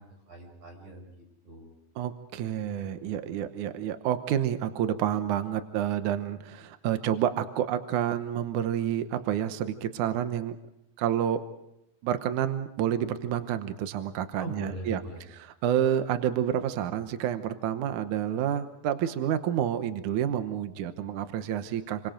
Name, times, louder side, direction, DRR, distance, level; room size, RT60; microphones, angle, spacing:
voice 1, 0.0-1.7 14.4-15.2, right 1 dB, 45° right, 1 dB, 8.2 m, -41 dB
voice 2, 2.0-10.6 11.0-11.4 12.0-15.0 15.3-22.1, right 10 dB, 75° right, 9 dB, 1.8 m, -29 dB
28.5 x 25.0 x 5.2 m, 0.81 s
omnidirectional pair, 5.0 m